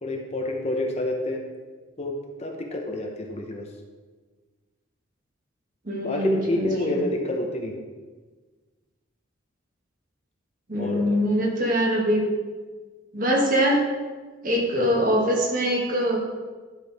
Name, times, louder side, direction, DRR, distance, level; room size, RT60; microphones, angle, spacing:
voice 1, 0.0-1.4 2.0-3.7 6.0-7.8 10.8-11.2, left 1 dB, 30° left, 2 dB, 0.8 m, -29 dB
voice 2, 5.8-7.1 10.7-12.3 13.1-13.9 14.4-16.2, equal, 40° right, -1 dB, 1.5 m, -23 dB
11.5 x 6.2 x 3.4 m, 1.4 s
head